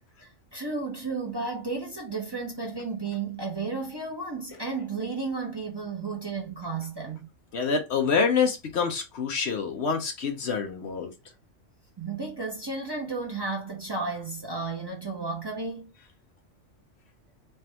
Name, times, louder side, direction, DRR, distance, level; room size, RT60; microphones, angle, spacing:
voice 1, 0.2-7.3 12.0-15.9, right 4 dB, 20° right, 0.9 m, -33 dB
voice 2, 7.5-11.1, left 5 dB, 60° left, 0.9 m, -26 dB
3.4 x 2.6 x 4.3 m
omnidirectional pair, 1.3 m